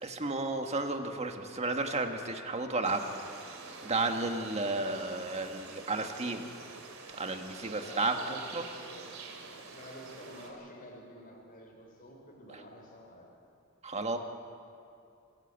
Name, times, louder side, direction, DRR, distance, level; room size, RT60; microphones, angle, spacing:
voice 1, 0.0-3.0 3.8-6.5 7.2-8.6 13.8-14.2, right 3 dB, 30° right, 5 dB, 1.6 m, -32 dB
sound 1, 2.8-10.5, right 4 dB, 90° right, 3.1 m, -47 dB
voice 2, 4.8-5.4 7.7-13.3, left 1 dB, 45° left, -1 dB, 3.8 m, -50 dB
26.0 x 13.5 x 8.2 m, 2.5 s
head